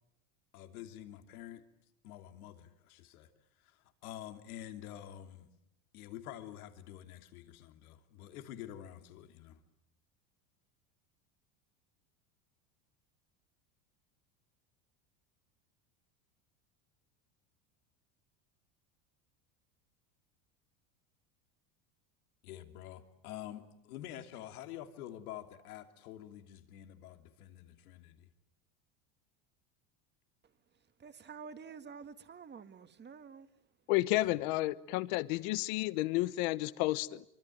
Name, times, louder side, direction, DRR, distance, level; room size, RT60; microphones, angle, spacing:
voice 1, 0.5-1.6 2.0-3.3 3.6-5.5 5.9-9.6 22.4-28.3 34.2-34.3, left 12 dB, 90° left, 7 dB, 3.0 m, -48 dB
voice 2, 31.0-33.5, right 6 dB, 25° right, 9 dB, 2.0 m, -49 dB
voice 3, 33.9-37.2, left 18 dB, 70° left, 16 dB, 1.2 m, -31 dB
25.0 x 25.0 x 9.2 m, 0.81 s
supercardioid pair, 125°, 43 cm